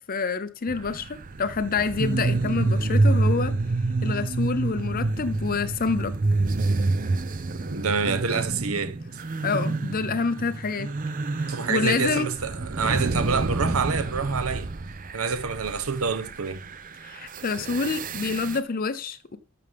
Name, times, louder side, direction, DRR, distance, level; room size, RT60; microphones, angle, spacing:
voice 1, 0.0-3.5 4.0-6.1 9.4-10.9 11.4-12.3 17.0-19.4, left 4 dB, 40° left, 0.6 m, -27 dB
sound 1, 0.7-18.6, right 3 dB, 40° right, 0.6 m, -28 dB
voice 2, 7.7-9.2 11.5-14.7 15.1-16.7, right 5 dB, 70° right, 0.9 m, -27 dB
12.5 x 6.8 x 3.5 m
head